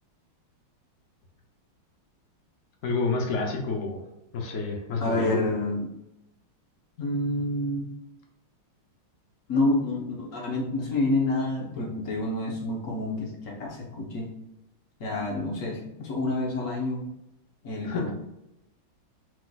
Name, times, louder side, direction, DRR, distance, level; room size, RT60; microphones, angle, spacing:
voice 1, 2.8-4.0 4.3-5.4 17.8-18.1, left 4 dB, 80° left, 1 dB, 0.6 m, -29 dB
voice 2, 5.0-5.9 7.0-7.9 9.5-14.3 15.0-17.0 17.6-18.1, left 2 dB, 50° left, -2 dB, 1.0 m, -28 dB
4.9 x 3.9 x 2.3 m, 0.87 s
omnidirectional pair, 2.2 m